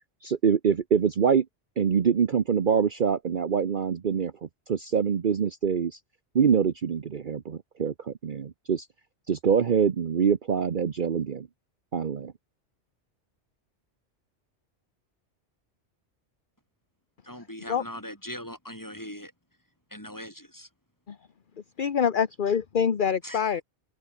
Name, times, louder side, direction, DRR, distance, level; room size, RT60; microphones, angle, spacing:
voice 1, 0.2-1.5 1.8-4.3 4.7-6.0 6.3-8.9 9.3-11.5 11.9-12.3, right 7 dB, 50° right, 1.0 m, -25 dB
voice 2, 17.2-19.3 19.9-20.7 23.2-23.5, equal, 15° left, 7.4 m, -40 dB
voice 3, 21.8-23.6, left 7 dB, 50° left, 1.1 m, -25 dB
omnidirectional pair, 1.2 m